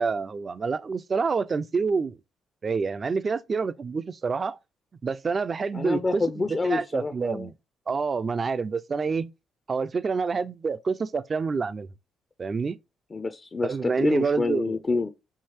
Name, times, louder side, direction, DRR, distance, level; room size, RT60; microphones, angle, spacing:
voice 1, 0.0-2.2 2.6-4.6 5.0-7.5 7.9-9.3 9.7-11.9 12.4-12.8 13.6-14.8, right 5 dB, 35° right, 0.3 m, -27 dB
voice 2, 5.7-7.5 13.1-15.1, left 3 dB, 30° left, 0.4 m, -27 dB
4.6 x 2.7 x 2.9 m
cardioid pair, 90°, 0 cm